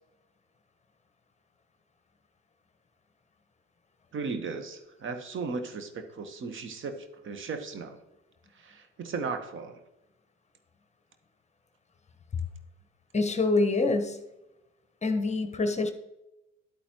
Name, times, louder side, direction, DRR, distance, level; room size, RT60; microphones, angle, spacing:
voice 1, 4.1-6.9 7.2-8.0 8.6-9.8, right 4 dB, 35° right, 7 dB, 1.2 m, -36 dB
voice 2, 13.1-14.2 15.0-15.9, left 3 dB, 20° left, 7 dB, 1.1 m, -25 dB
12.0 x 8.5 x 3.0 m, 0.96 s
figure-of-eight pair, 60°, 37 cm